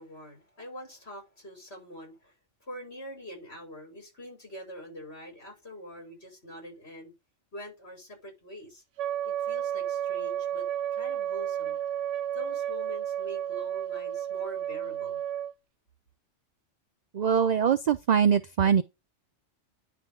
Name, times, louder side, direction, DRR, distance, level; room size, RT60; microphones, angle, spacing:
voice 1, 0.0-2.3 2.6-7.1 7.5-8.8 9.2-10.7 10.9-12.0 12.3-15.2, equal, 60° left, 5.9 m, -44 dB
Wind instrument woodwind instrument, 9.0-15.5, right 10 dB, 90° right, 1.0 m, -32 dB
voice 2, 17.1-18.8, right 7 dB, 60° right, 0.4 m, -23 dB
10.0 x 3.6 x 5.3 m
omnidirectional pair, 1.2 m